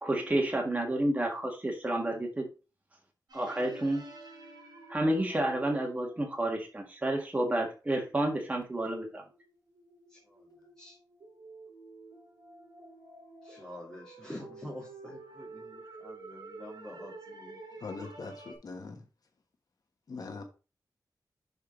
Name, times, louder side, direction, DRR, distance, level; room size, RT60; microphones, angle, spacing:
voice 1, 0.0-2.5 3.3-4.0 4.9-9.2, right 1 dB, 20° right, 1.6 m, -30 dB
sound 1, 3.3-6.8 8.5-8.6 9.2-18.6, right 2 dB, 80° right, 3.2 m, -50 dB
voice 2, 10.1-10.4 10.8-11.0 13.4-17.6, left 1 dB, 5° left, 2.5 m, -47 dB
voice 3, 17.8-19.1 20.1-20.4, left 4 dB, 60° left, 1.2 m, -41 dB
6.7 x 4.7 x 5.0 m
wide cardioid pair, 165°, 7 cm